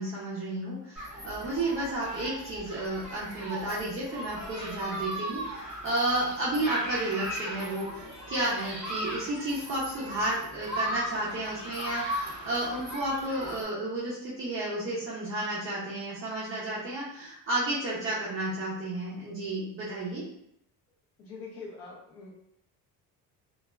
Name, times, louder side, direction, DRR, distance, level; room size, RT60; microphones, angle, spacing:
voice 1, 0.0-20.2, right 1 dB, 35° right, -7 dB, 0.5 m, -32 dB
Human group actions, 1.0-13.6, equal, 5° right, 1.1 m, -37 dB
voice 2, 21.2-22.3, left 4 dB, 40° left, -4 dB, 0.7 m, -43 dB
3.1 x 2.3 x 2.3 m, 0.75 s
cardioid pair, 170°, 37 cm